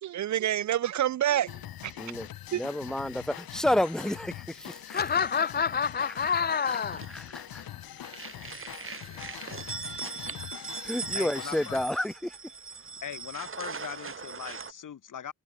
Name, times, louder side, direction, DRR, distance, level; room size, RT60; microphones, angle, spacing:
voice 1, 0.0-1.9 2.5-2.6, right 11 dB, 55° right, 0.4 m, -28 dB
sound 1, 1.5-11.9, left 12 dB, 85° left, 1.0 m, -43 dB
voice 2, 2.0-5.0 6.5-6.8 7.1-7.6 8.4-8.5 10.8-12.4, left 1 dB, ahead, 1.1 m, -31 dB
voice 3, 4.9-7.1, left 6 dB, 30° left, 0.4 m, -27 dB
sound 2, 6.9-7.7 8.0-14.7, right 5 dB, 35° right, 2.6 m, -40 dB
voice 4, 11.1-11.8 13.0-15.3, left 9 dB, 60° left, 1.7 m, -40 dB
cardioid pair, 100°, 35 cm